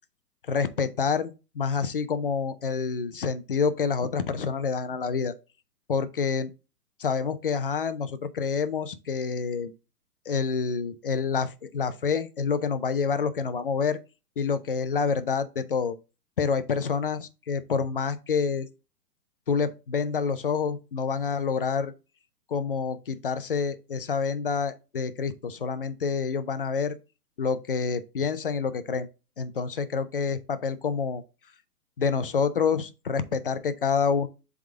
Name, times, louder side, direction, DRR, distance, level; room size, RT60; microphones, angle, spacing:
voice 1, 0.5-5.3 5.9-6.5 7.0-9.7 10.3-14.0 14.4-16.0 16.4-18.7 19.5-21.9 22.5-26.9 27.4-29.1 29.4-31.2 32.0-34.3, left 5 dB, 35° left, 0.4 m, -27 dB
7.4 x 3.6 x 3.6 m
hypercardioid pair, 150°, 50 cm